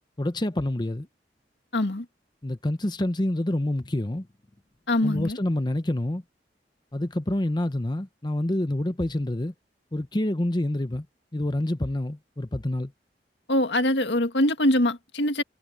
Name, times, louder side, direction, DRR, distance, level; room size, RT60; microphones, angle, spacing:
voice 1, 0.2-1.1 2.4-4.3 5.0-6.2 6.9-9.5 9.9-11.1 11.3-12.9, left 1 dB, 25° left, 0.9 m, -27 dB
voice 2, 1.7-2.1 4.9-5.4 13.5-15.4, left 1 dB, 85° left, 2.0 m, -23 dB
head